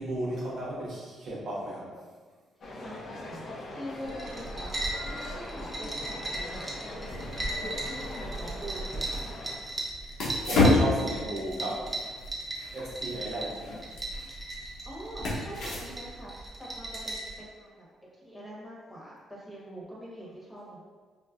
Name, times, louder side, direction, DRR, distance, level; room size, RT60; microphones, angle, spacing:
voice 1, 0.0-2.0 10.4-11.9 12.7-13.8, right 1 dB, 65° right, -5 dB, 0.8 m, -34 dB
sound 1, 2.6-9.6, left 1 dB, 55° left, 0.5 m, -41 dB
voice 2, 2.8-4.7 5.0-9.3 14.8-17.9 18.1-20.8, equal, 5° left, -6 dB, 1.1 m, -44 dB
sound 2, 4.0-17.4, right 2 dB, 30° right, 0.6 m, -37 dB
sound 3, 7.1-16.3, left 2 dB, 80° left, 0.9 m, -31 dB
4.6 x 2.1 x 2.4 m, 1.5 s
cardioid pair, 95°, 0 cm